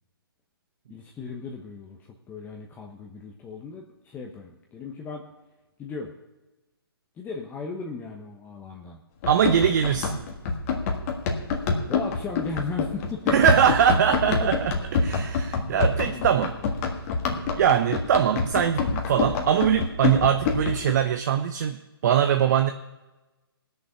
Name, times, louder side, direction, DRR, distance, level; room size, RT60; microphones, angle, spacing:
voice 1, 0.9-5.3 5.8-6.1 7.2-9.0 11.9-13.3 15.7-17.0, left 4 dB, 15° left, 0 dB, 1.0 m, -37 dB
Run, 9.2-20.9, left 4 dB, 35° left, 1.7 m, -27 dB
voice 2, 9.3-10.2 13.3-14.6 14.9-16.5 17.5-21.8 22.0-22.7, right 9 dB, 45° right, 8 dB, 0.7 m, -22 dB
19.0 x 6.7 x 5.6 m, 1.1 s
figure-of-eight pair, 135°, 13 cm